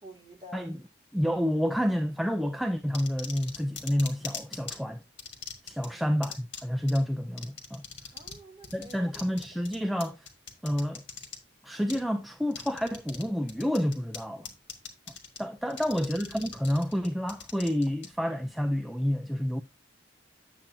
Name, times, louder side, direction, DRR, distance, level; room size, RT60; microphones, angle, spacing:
voice 1, 0.0-0.7 5.8-6.0 8.1-9.3 15.6-16.0, right 1 dB, 20° right, 2.4 m, -49 dB
voice 2, 1.1-5.0 5.6-7.8 8.7-10.3 10.6-11.0 11.6-14.5 15.4-19.6, equal, ahead, 0.4 m, -29 dB
sound 1, 2.9-4.8 5.2-5.9 6.2-6.6 6.9-7.0 7.4-8.4 8.6-11.4 11.9-12.0 12.5-13.2 13.5-14.2 14.5-15.4 15.7-18.1, left 6 dB, 65° left, 1.7 m, -40 dB
8.8 x 7.4 x 2.7 m
head